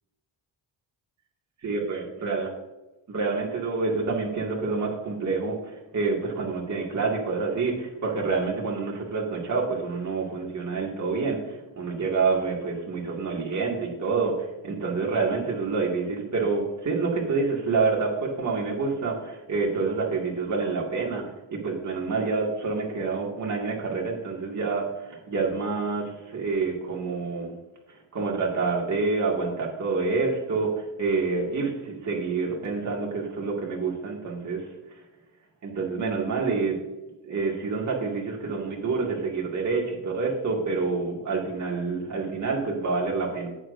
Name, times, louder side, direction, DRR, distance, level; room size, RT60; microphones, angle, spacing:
voice 1, 1.6-2.5 3.1-27.5 27.9-34.7 35.6-36.8 37.2-43.5, right 4 dB, 40° right, -1 dB, 2.2 m, -27 dB
10.5 x 8.6 x 2.7 m, 1.1 s
wide cardioid pair, 150°, 46 cm